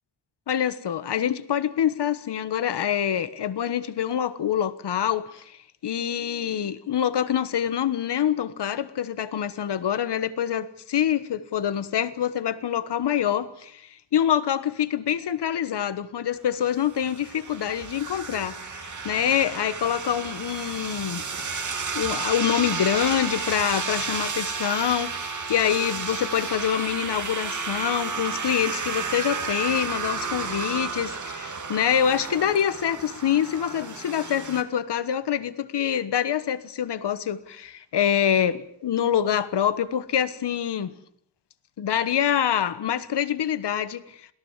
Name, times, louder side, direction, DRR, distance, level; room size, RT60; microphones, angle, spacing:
voice 1, 0.5-21.3 21.9-40.9 41.8-44.3, left 9 dB, 65° left, 1.3 m, -26 dB
sound 1, 16.7-34.6, right 5 dB, 45° right, 2.4 m, -32 dB
27.0 x 18.0 x 7.4 m
wide cardioid pair, 115°, 43 cm